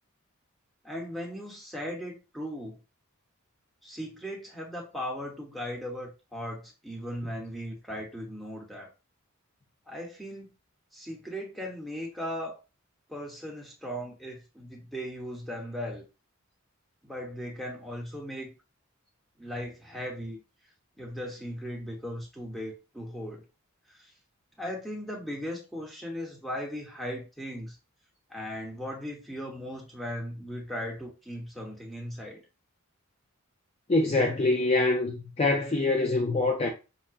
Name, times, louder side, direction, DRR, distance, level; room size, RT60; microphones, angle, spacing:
voice 1, 0.8-2.8 3.8-8.9 9.9-10.5 10.9-12.6 13.1-16.0 17.0-18.5 19.4-20.4 21.0-23.4 23.9-24.1 24.6-27.8 28.3-32.4, equal, ahead, 1.0 m, -37 dB
voice 2, 33.9-36.7, left 2 dB, 30° left, 0.4 m, -25 dB
5.6 x 2.1 x 2.4 m
head